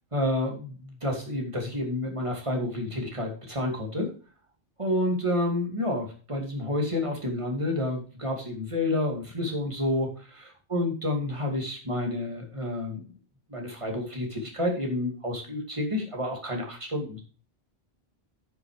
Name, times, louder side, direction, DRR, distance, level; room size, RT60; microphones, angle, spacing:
voice 1, 0.1-4.1 4.8-10.1 10.7-13.0 13.5-17.2, left 1 dB, 30° right, 0 dB, 2.6 m, -29 dB
10.0 x 6.5 x 4.8 m, 0.39 s
omnidirectional pair, 1.1 m